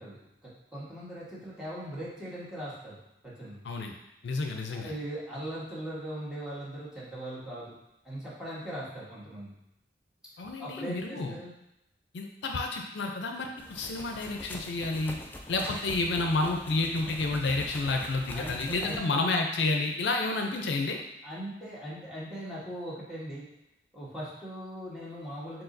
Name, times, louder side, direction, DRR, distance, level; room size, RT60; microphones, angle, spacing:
voice 1, 0.0-3.0 3.2-3.6 4.7-7.7 8.0-9.5 10.6-11.5 18.3-19.0 21.2-23.5 23.9-25.6, right 1 dB, 5° right, -9 dB, 1.3 m, -40 dB
voice 2, 4.2-4.9 10.4-11.4 12.1-15.2 15.5-21.0, left 3 dB, 70° left, 3 dB, 0.5 m, -30 dB
sound 1, 13.6-19.0, left 1 dB, 10° left, 0.3 m, -43 dB
4.7 x 3.8 x 2.6 m, 0.86 s
head